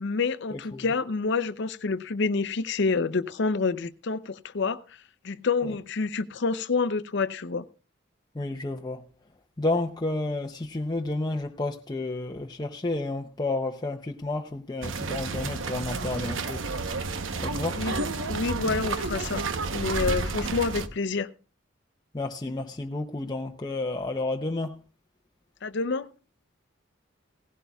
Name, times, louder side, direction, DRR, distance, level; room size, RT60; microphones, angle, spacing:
voice 1, 0.0-4.8 5.2-7.6 17.7-19.5 19.7-21.3 25.6-26.1, left 4 dB, 65° left, 0.6 m, -28 dB
voice 2, 0.5-0.8 8.3-9.0 9.6-16.6 17.4-17.8 22.1-24.8, left 2 dB, 20° left, 0.6 m, -31 dB
sound 1, 14.8-20.9, right 3 dB, 85° right, 0.9 m, -31 dB
17.5 x 15.5 x 2.3 m
head